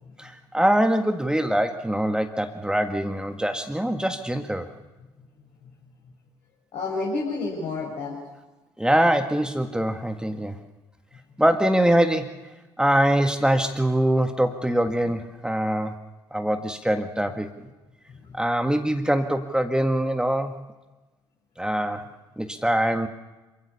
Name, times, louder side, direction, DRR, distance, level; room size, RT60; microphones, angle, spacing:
voice 1, 0.2-4.7 8.8-10.6 11.4-12.5 12.8-16.0 16.3-17.5 18.3-20.6 21.6-22.1 22.4-23.1, right 1 dB, 5° right, 7 dB, 1.7 m, -23 dB
voice 2, 6.7-8.2 18.1-18.4, left 3 dB, 55° left, -4 dB, 6.6 m, -30 dB
27.0 x 16.0 x 7.0 m, 1.1 s
figure-of-eight pair, 50°, 13 cm